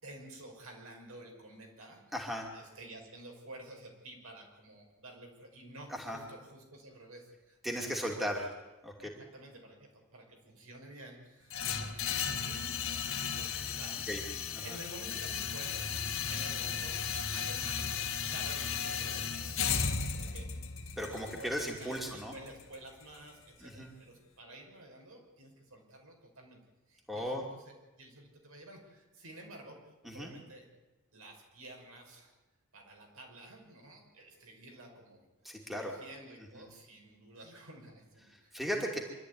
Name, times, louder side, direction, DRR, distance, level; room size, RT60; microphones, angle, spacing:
voice 1, 0.0-2.0 2.5-8.1 9.0-14.0 14.6-15.9 16.3-20.5 21.0-26.6 26.9-30.7 31.1-32.4 32.7-35.3 35.6-38.5, right 1 dB, 70° right, 1 dB, 5.7 m, -51 dB
voice 2, 2.1-2.5 5.9-6.2 7.6-8.5 8.8-9.1 14.1-14.2 14.5-14.8 21.0-22.3 23.6-23.9 27.1-27.4 30.0-30.3 35.4-36.0 36.6-36.7 38.3-39.0, equal, ahead, 0 dB, 2.7 m, -36 dB
sound 1, 11.5-23.5, left 6 dB, 65° left, 1.9 m, -35 dB
25.0 x 13.5 x 9.7 m, 1.1 s
head